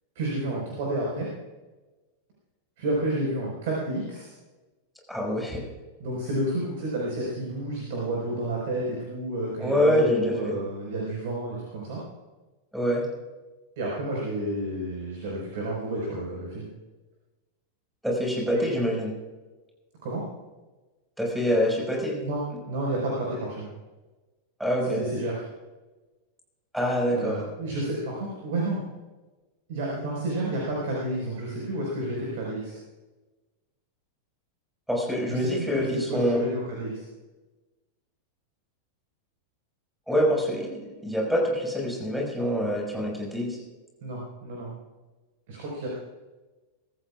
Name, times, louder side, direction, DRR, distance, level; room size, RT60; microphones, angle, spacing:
voice 1, 0.1-1.3 2.8-4.3 6.0-12.0 13.8-16.7 18.5-18.6 20.0-20.2 22.2-23.7 24.8-25.4 27.1-28.8 29.7-32.8 35.3-37.0 44.0-44.7 45.5-45.9, right 1 dB, 55° right, -3 dB, 4.9 m, -30 dB
voice 2, 5.1-5.6 9.6-10.5 12.7-13.0 18.0-19.1 21.2-22.2 24.6-25.0 26.7-27.4 34.9-36.4 40.1-43.6, equal, ahead, -2 dB, 5.6 m, -25 dB
24.5 x 14.5 x 2.4 m, 1.2 s
figure-of-eight pair, 90°, 0 cm